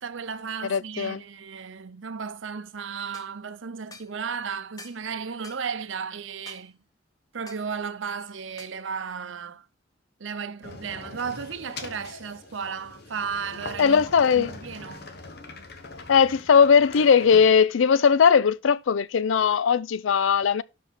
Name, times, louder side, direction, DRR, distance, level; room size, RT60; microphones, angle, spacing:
voice 1, 0.0-6.8 7.3-9.7 10.2-14.0 14.3-15.1, right 6 dB, 80° right, 0.6 m, -34 dB
voice 2, 0.7-1.2 13.8-14.5 16.1-20.6, left 6 dB, 85° left, 0.4 m, -19 dB
sound 1, 3.1-3.3 3.9-4.1 4.8-5.0 5.4-5.7 6.5-6.7 7.5-7.7 8.6-8.8, left 3 dB, 20° left, 0.7 m, -46 dB
sound 2, 10.6-17.5, left 3 dB, 55° left, 1.1 m, -42 dB
5.6 x 5.0 x 5.6 m
head